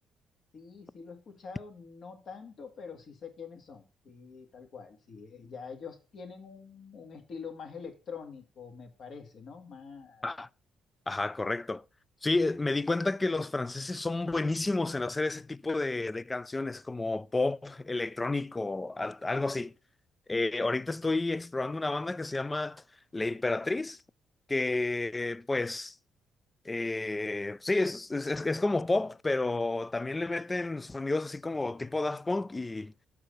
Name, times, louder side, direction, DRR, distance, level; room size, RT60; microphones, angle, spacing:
voice 1, 0.5-10.3, left 5 dB, 60° left, 1.8 m, -45 dB
voice 2, 11.1-11.8 12.2-19.7 20.3-22.8 23.1-24.0 24.5-26.0 26.7-32.9, left 2 dB, 20° left, 0.3 m, -31 dB
6.4 x 4.7 x 6.7 m
cardioid pair, 90°, 0 cm